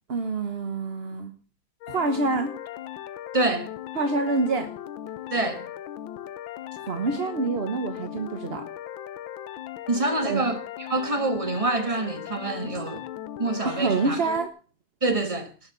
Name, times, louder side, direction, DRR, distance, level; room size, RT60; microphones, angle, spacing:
voice 1, 0.1-1.3 1.9-2.5 3.9-4.7 6.8-8.6 10.2-10.4 13.6-14.5, right 3 dB, 40° right, 1.0 m, -26 dB
sound 1, 1.8-14.5, left 11 dB, 70° left, 1.5 m, -38 dB
voice 2, 3.3-3.7 5.3-5.7 9.9-10.6 10.9-13.0 13.4-14.2 15.0-15.5, right 2 dB, 20° right, 1.4 m, -26 dB
19.0 x 6.5 x 6.8 m
omnidirectional pair, 2.3 m